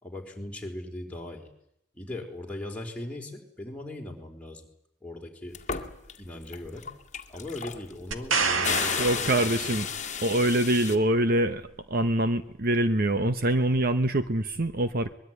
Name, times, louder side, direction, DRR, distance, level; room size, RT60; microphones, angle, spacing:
voice 1, 0.0-1.5 1.9-4.7 5.0-5.6 6.2-6.9 7.3-9.8, left 1 dB, 5° left, 0 dB, 4.7 m, -39 dB
sound 1, 5.5-6.2 6.5-11.0, left 7 dB, 35° left, 2.0 m, -32 dB
sound 2, 8.1-10.1 13.8-13.9, right 4 dB, 75° right, 2.1 m, -29 dB
voice 2, 9.0-9.9 10.2-11.6 11.9-15.1, right 1 dB, 45° right, 10 dB, 1.0 m, -24 dB
23.5 x 22.0 x 9.5 m, 0.76 s
head